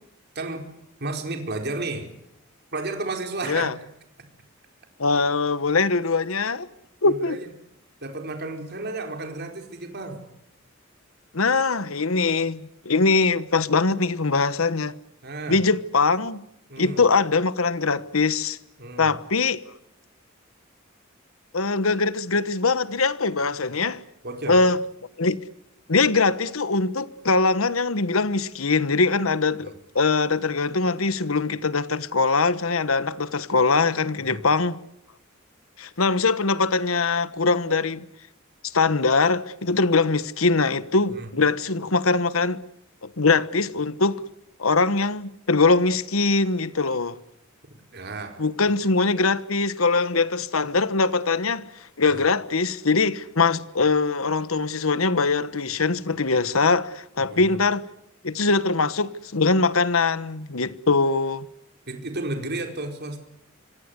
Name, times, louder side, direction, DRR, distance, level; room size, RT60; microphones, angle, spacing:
voice 1, 0.3-0.7 1.0-2.1 2.7-3.7 7.0-7.5 8.0-10.2 15.2-15.6 16.7-17.0 18.8-19.1 24.2-24.6 29.6-29.7 34.3-34.4 41.1-41.3 47.9-48.4 52.1-52.2 57.2-57.6 61.9-63.2, right 2 dB, 55° right, 4.6 m, -32 dB
voice 2, 5.0-6.7 7.0-7.4 11.3-14.9 15.5-16.4 16.8-18.6 19.0-19.6 21.5-24.0 24.5-24.8 25.2-25.4 25.9-34.8 35.8-38.0 38.6-42.6 43.0-44.2 44.6-47.2 48.4-51.7 52.0-57.9 58.2-61.5, left 4 dB, 85° left, 1.2 m, -22 dB
26.5 x 23.5 x 8.2 m
head